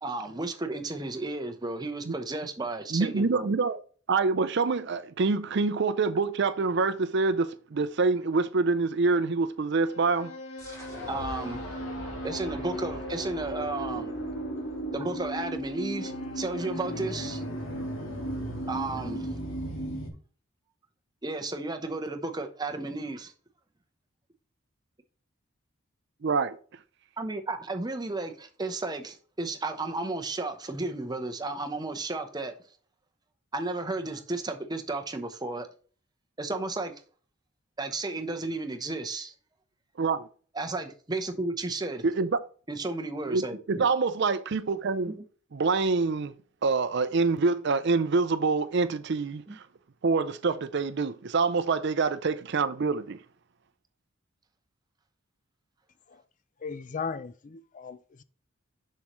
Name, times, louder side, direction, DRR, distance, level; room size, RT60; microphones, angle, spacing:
voice 1, 0.0-3.5 11.0-11.6 12.2-14.1 14.9-17.4 18.7-19.3 21.2-23.3 27.2-32.5 33.5-35.7 36.4-36.9 37.8-39.3 40.5-42.0 42.7-43.8 45.1-45.2 49.5-49.6, right 2 dB, 20° right, 0.8 m, -33 dB
voice 2, 2.9-3.8 4.1-10.3 26.2-26.6 40.0-40.3 42.0-42.4 43.3-43.4 43.7-45.1 45.5-46.3 46.6-49.6 50.0-53.2, right 4 dB, 55° right, 0.5 m, -26 dB
sound 1, 9.8-20.1, right 1 dB, 70° left, 2.1 m, -36 dB
sound 2, 10.6-16.1, equal, 15° left, 2.7 m, -46 dB
voice 3, 56.6-58.2, left 5 dB, 40° left, 0.4 m, -37 dB
6.9 x 6.5 x 3.1 m
head